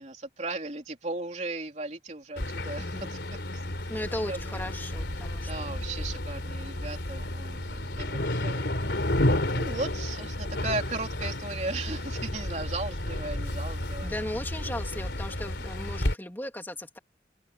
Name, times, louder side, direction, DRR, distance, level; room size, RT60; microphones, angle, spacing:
voice 1, 0.0-3.2 3.5-3.6 4.3-4.6 5.5-8.7 9.0-9.1 9.5-14.1, right 2 dB, 40° right, 3.5 m, -36 dB
sound 1, 2.4-16.1, left 1 dB, 85° left, 3.6 m, -31 dB
voice 2, 2.8-3.1 3.9-5.9 14.0-17.0, left 1 dB, 10° left, 2.6 m, -37 dB
open air
head